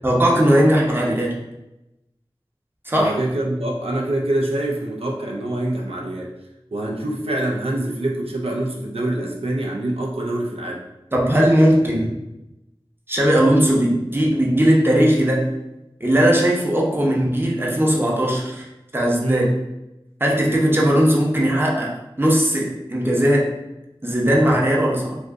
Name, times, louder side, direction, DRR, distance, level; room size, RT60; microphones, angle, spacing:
voice 1, 0.0-1.3 2.8-3.2 11.1-12.1 13.1-15.5 16.0-18.7 18.9-19.5 20.2-23.5 24.0-25.2, equal, 25° right, -3 dB, 0.7 m, -18 dB
voice 2, 3.0-6.3 6.7-10.8 19.2-19.5, right 1 dB, 85° right, -1 dB, 0.4 m, -25 dB
2.7 x 2.5 x 3.4 m, 0.94 s
wide cardioid pair, 40°, 10 cm